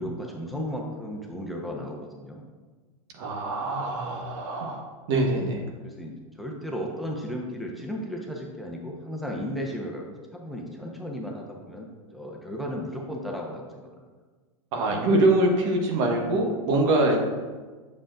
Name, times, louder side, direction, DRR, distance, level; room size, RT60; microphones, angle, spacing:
voice 1, 0.0-2.4 5.4-5.5 5.8-10.0 10.3-13.9, equal, ahead, 0 dB, 1.0 m, -35 dB
voice 2, 3.2-4.8 5.1-5.6 14.7-17.2, right 2 dB, 60° right, 1 dB, 1.3 m, -24 dB
7.4 x 6.9 x 2.5 m, 1.3 s
hypercardioid pair, 100°, 18 cm